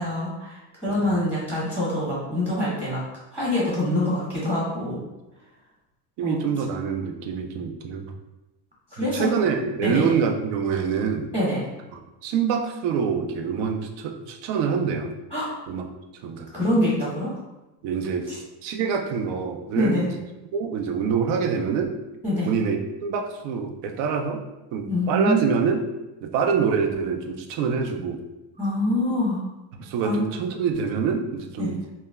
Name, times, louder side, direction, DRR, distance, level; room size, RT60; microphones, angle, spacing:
voice 1, 0.0-3.0 3.3-5.0 6.2-6.4 8.9-9.3 9.8-10.0 11.3-11.6 15.3-15.5 16.5-17.3 18.3-18.4 19.8-20.1 22.2-22.5 24.9-25.5 28.6-29.4 30.0-30.2 31.6-31.7, left 1 dB, 10° right, -7 dB, 1.0 m, -25 dB
voice 2, 6.2-8.1 9.0-11.3 11.9-15.1 15.7-15.9 16.2-16.7 17.8-20.0 20.5-21.9 22.4-24.4 24.7-25.8 26.2-28.2 29.7-31.8, right 6 dB, 60° right, 4 dB, 0.5 m, -26 dB
2.1 x 2.1 x 3.4 m, 1.0 s
supercardioid pair, 125°, 47 cm